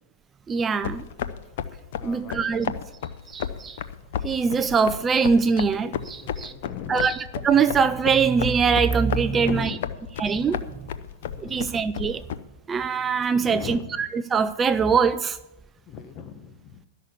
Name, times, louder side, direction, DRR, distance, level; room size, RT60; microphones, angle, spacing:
voice 1, 0.5-1.0 2.0-2.7 3.3-3.8 4.2-6.5 6.9-9.7 10.2-10.7 11.4-12.2 12.7-15.4, right 5 dB, 20° right, 0.4 m, -23 dB
sound 1, 0.8-12.4, left 9 dB, 65° left, 0.7 m, -33 dB
voice 2, 2.0-2.9 6.2-7.2 9.3-10.1 11.4-11.8 13.4-14.3 15.9-16.8, left 7 dB, 35° left, 1.3 m, -39 dB
12.5 x 6.4 x 8.2 m
hypercardioid pair, 130°, 0 cm